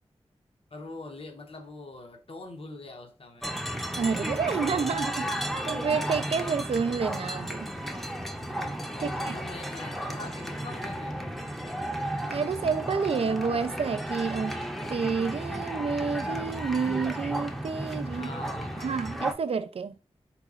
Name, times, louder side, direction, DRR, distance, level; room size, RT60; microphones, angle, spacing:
voice 1, 0.7-4.2 4.5-4.6 8.9-11.3 18.0-19.1, left 2 dB, 60° left, 0.8 m, -44 dB
sound 1, 3.4-19.3, right 1 dB, ahead, 0.6 m, -33 dB
voice 2, 4.0-7.7 9.0-9.3 12.3-14.6 14.9-18.3 18.8-20.0, right 5 dB, 65° right, 0.4 m, -29 dB
3.9 x 2.9 x 2.4 m
wide cardioid pair, 60°, 11 cm